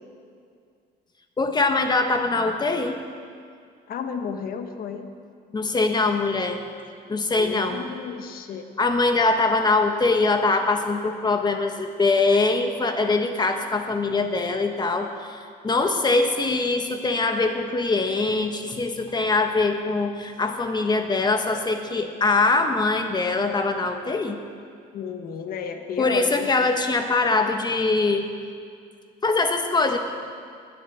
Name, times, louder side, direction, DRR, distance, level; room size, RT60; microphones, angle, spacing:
voice 1, 1.4-3.0 5.5-6.6 7.1-7.8 8.8-24.4 26.0-28.3 29.2-30.0, left 3 dB, 25° left, 5 dB, 1.4 m, -23 dB
voice 2, 3.9-5.1 7.4-8.7 24.9-26.5, left 6 dB, 60° left, 6 dB, 1.4 m, -33 dB
20.0 x 8.5 x 7.0 m, 2.2 s
cardioid pair, 110°, 17 cm